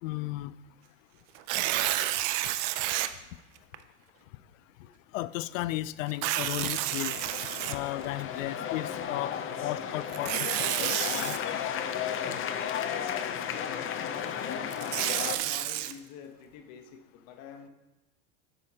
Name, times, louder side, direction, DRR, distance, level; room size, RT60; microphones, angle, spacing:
voice 1, 0.0-0.5 5.1-7.2 7.7-9.3 9.6-11.4, left 16 dB, 80° left, 18 dB, 0.5 m, -34 dB
Tearing, 1.3-3.1 3.7-3.8 6.1-8.2 10.1-11.4 14.5-15.9, right 14 dB, 60° right, 0.7 m, -30 dB
sound 1, 6.4-15.4, left 8 dB, 35° left, 0.7 m, -34 dB
voice 2, 12.8-14.7 15.1-17.7, left 7 dB, 60° left, 6 dB, 1.2 m, -47 dB
9.9 x 7.5 x 2.9 m, 1.0 s
supercardioid pair, 110°, 39 cm